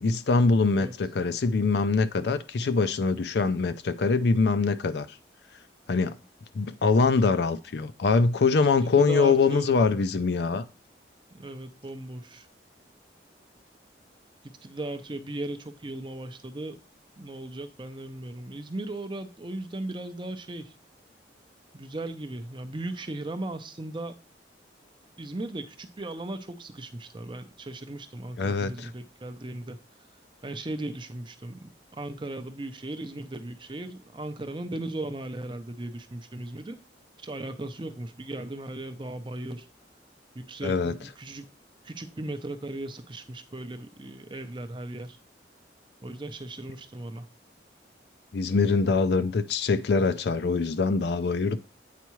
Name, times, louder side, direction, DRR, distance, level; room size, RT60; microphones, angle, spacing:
voice 1, 0.0-5.1 5.9-6.1 6.5-10.6 28.4-28.9 40.6-40.9 48.3-51.6, left 4 dB, 65° left, 0.4 m, -23 dB
voice 2, 8.9-9.7 11.3-12.5 14.6-16.8 17.2-20.7 21.7-24.1 25.2-29.8 30.4-36.8 37.2-39.7 40.3-41.5 41.8-45.2 46.0-47.2, right 2 dB, 25° right, 0.5 m, -37 dB
8.3 x 4.6 x 3.0 m
head